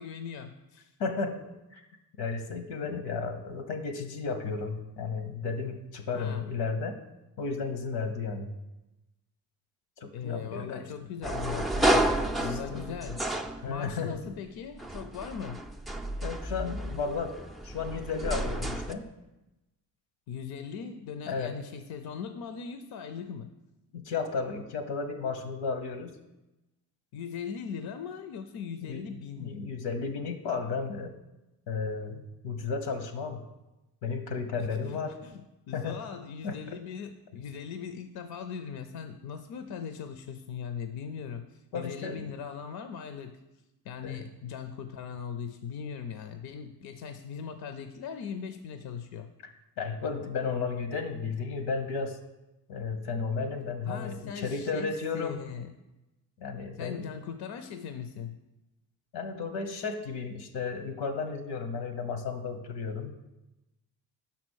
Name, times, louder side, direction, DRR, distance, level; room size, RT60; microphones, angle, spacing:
voice 1, 0.0-0.9 6.1-6.5 10.1-12.1 12.4-13.2 13.7-15.6 20.3-23.5 27.1-29.7 34.6-35.4 35.7-43.4 43.8-49.3 53.9-55.7 56.8-58.4, left 7 dB, 65° left, 8 dB, 0.6 m, -39 dB
voice 2, 1.0-1.8 2.2-7.0 7.4-8.5 10.0-10.9 12.4-12.9 13.6-14.2 16.2-17.4 17.6-19.0 21.3-21.5 23.9-26.1 28.8-29.0 29.4-31.1 31.7-33.4 34.0-35.1 35.7-36.0 36.4-36.7 41.7-42.2 44.0-44.2 49.4-49.5 49.8-52.2 52.7-55.4 56.4-57.0 59.1-63.1, left 4 dB, 85° left, 7 dB, 1.0 m, -33 dB
sound 1, 11.2-14.2 14.7-18.9, right 1 dB, ahead, 0.3 m, -31 dB
5.9 x 4.2 x 6.2 m, 0.98 s
cardioid pair, 80°, 40 cm